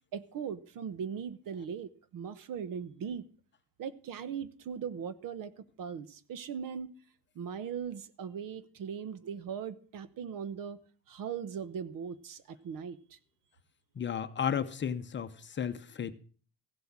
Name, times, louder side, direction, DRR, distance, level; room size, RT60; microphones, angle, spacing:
voice 1, 0.1-3.2 3.8-6.9 7.3-10.8 11.1-13.2, right 7 dB, 55° right, 1.0 m, -39 dB
voice 2, 14.0-16.1, left 8 dB, 30° left, 0.8 m, -33 dB
15.5 x 7.8 x 7.3 m
cardioid pair, 170°, 39 cm